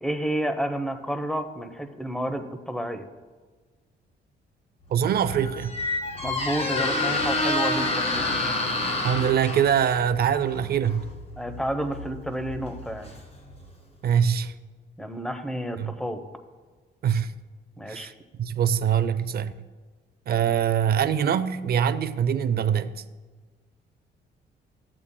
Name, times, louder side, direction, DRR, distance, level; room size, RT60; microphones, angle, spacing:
voice 1, 0.0-3.0 6.2-8.3 11.4-13.1 15.0-16.2 17.8-18.1, right 1 dB, 5° left, 0.8 m, -30 dB
Squeak, 4.9-13.7, left 2 dB, 30° left, 2.0 m, -29 dB
voice 2, 4.9-5.7 9.0-11.1 14.0-14.6 15.8-15.9 17.0-17.3 17.9-18.1 18.4-19.5 20.3-23.0, right 8 dB, 50° right, 0.5 m, -23 dB
14.0 x 8.8 x 2.2 m
cardioid pair, 90°, 20 cm